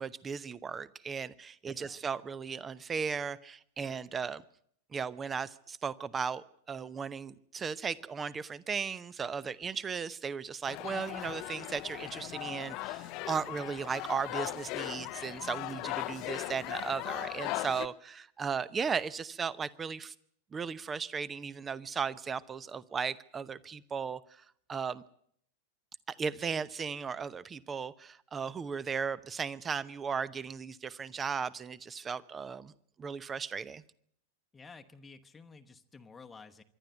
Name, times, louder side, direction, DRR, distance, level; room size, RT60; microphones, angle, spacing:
voice 1, 0.0-4.4 4.9-20.1 20.5-24.4 24.7-25.0 26.1-32.7 33.0-33.8, right 6 dB, 20° right, 20 dB, 0.8 m, -36 dB
voice 2, 1.7-2.0 34.5-36.6, left 4 dB, 15° left, 6 dB, 1.1 m, -52 dB
sound 1, 10.7-17.9, left 20 dB, 40° left, 0.8 m, -38 dB
25.5 x 12.0 x 9.2 m, 0.67 s
figure-of-eight pair, 90°, 0 cm